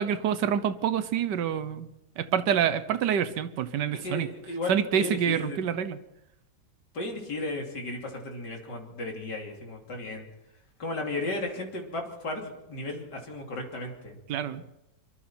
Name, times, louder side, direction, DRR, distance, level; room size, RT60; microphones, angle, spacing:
voice 1, 0.0-1.9 2.2-4.3 4.7-6.0 14.3-14.6, right 8 dB, 85° right, 12 dB, 1.5 m, -27 dB
voice 2, 4.0-5.6 6.9-10.3 10.8-14.2, left 2 dB, 90° left, 0 dB, 3.7 m, -35 dB
24.5 x 23.5 x 4.5 m, 0.91 s
omnidirectional pair, 1.8 m